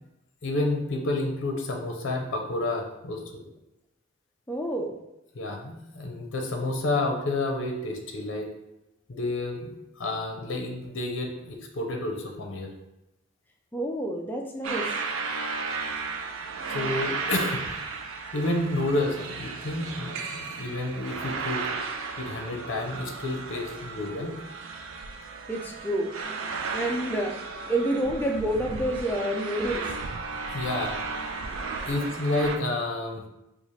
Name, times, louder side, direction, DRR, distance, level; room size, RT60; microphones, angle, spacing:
voice 1, 0.4-3.4 5.3-8.5 9.1-12.7 16.7-17.7 18.3-21.6 22.2-24.3 30.5-30.9 31.9-33.3, left 2 dB, 65° left, 2 dB, 0.6 m, -30 dB
voice 2, 4.5-5.0 13.7-14.9 25.5-29.9 31.7-31.9, right 1 dB, 10° left, 0 dB, 0.3 m, -29 dB
sound 1, 14.6-32.6, right 4 dB, 75° right, 0.4 m, -34 dB
4.1 x 2.4 x 3.1 m, 0.91 s
head